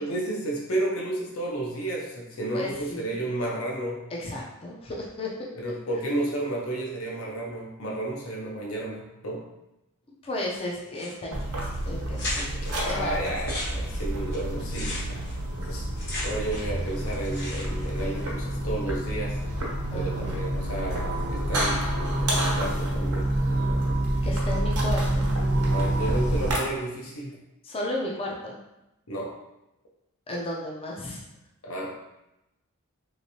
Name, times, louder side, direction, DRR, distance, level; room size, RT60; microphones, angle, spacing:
voice 1, 0.0-4.0 5.6-9.4 12.7-15.2 15.6-15.9 16.2-19.4 19.9-23.3 25.7-27.4 29.1-29.3 31.6-32.0, right 1 dB, 70° left, -2 dB, 0.7 m, -32 dB
voice 2, 2.5-3.2 4.2-5.5 10.2-13.3 13.7-13.8 19.9-20.3 24.2-25.3 27.6-28.6 30.3-31.2, left 1 dB, 25° left, -2 dB, 0.4 m, -34 dB
sound 1, 10.9-11.4 11.7-11.8 12.1-12.7 13.2-16.8 17.1-17.9, left 1 dB, 50° left, 1.1 m, -36 dB
sound 2, 11.3-26.6, right 1 dB, 85° right, 0.9 m, -28 dB
3.2 x 3.1 x 2.7 m, 0.91 s
head